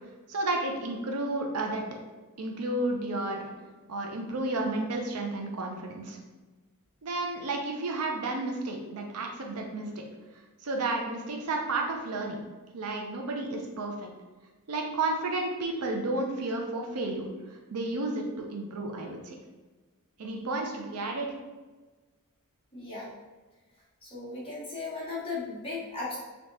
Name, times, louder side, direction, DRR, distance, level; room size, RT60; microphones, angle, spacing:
voice 1, 0.3-1.8 2.4-3.5 3.9-6.2 7.0-9.9 10.6-12.4 12.7-14.1 14.7-19.4 20.2-21.3, right 2 dB, 80° right, 1 dB, 0.6 m, -32 dB
voice 2, 22.7-23.1 24.0-26.2, left 3 dB, 25° left, -8 dB, 1.2 m, -36 dB
3.3 x 2.8 x 2.7 m, 1.3 s
head